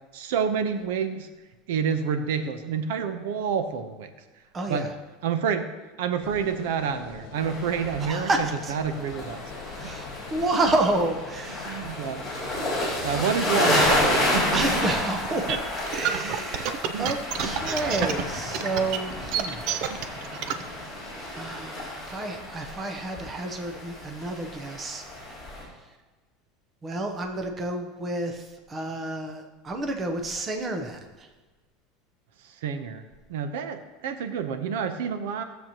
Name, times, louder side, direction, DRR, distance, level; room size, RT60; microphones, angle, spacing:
voice 1, 0.1-1.3 1.7-4.1 4.7-4.8 5.2-5.7 6.0-9.4 9.8-9.9 11.6-12.6 13.0-14.6 16.0-16.3 16.9-17.2 17.4-17.7 32.4-33.0 33.3-35.4, right 7 dB, 85° right, 9 dB, 0.8 m, -29 dB
voice 2, 4.5-4.9 8.0-8.7 9.8-11.8 13.1-13.2 14.5-19.7 21.4-25.7 26.8-31.3, right 2 dB, 15° right, 4 dB, 0.8 m, -30 dB
sound 1, 6.2-14.9, left 6 dB, 60° left, 1.2 m, -43 dB
sound 2, 7.3-25.6, left 1 dB, ahead, 3.6 m, -30 dB
sound 3, 15.2-20.6, right 9 dB, 45° right, 0.5 m, -28 dB
16.0 x 7.1 x 3.0 m, 1.2 s
cardioid pair, 180°, 0 cm